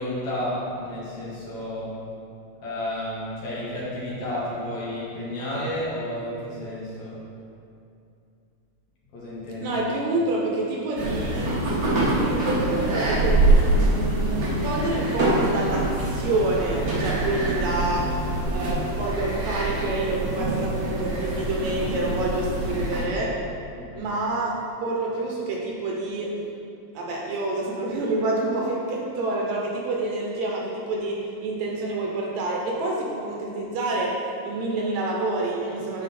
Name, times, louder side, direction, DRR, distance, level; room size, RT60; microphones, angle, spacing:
voice 1, 0.0-2.0 2.6-7.2 9.1-9.8 23.7-24.1, left 1 dB, 65° left, -8 dB, 2.9 m, -31 dB
voice 2, 9.6-11.5 12.1-18.1 18.5-23.4 23.9-26.3 26.9-36.0, right 2 dB, 70° right, -2 dB, 2.0 m, -28 dB
sound 1, 11.0-23.0, right 1 dB, 55° right, 1.0 m, -24 dB
9.0 x 4.6 x 4.2 m, 2.6 s
omnidirectional pair, 3.6 m